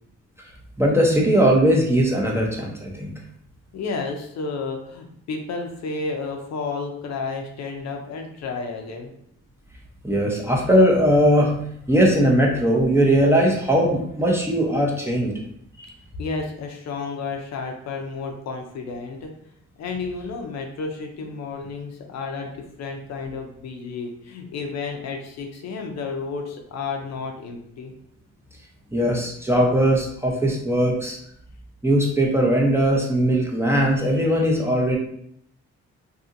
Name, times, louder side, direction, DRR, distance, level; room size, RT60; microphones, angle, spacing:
voice 1, 0.8-3.1 10.0-11.6 11.9-15.4 15.8-15.9 28.9-31.2 31.8-35.0, equal, 10° right, -2 dB, 0.6 m, -19 dB
voice 2, 3.7-9.1 16.2-19.3 19.8-27.9, left 4 dB, 60° left, 3 dB, 0.6 m, -31 dB
2.7 x 2.7 x 2.4 m, 0.70 s
cardioid pair, 90°, 30 cm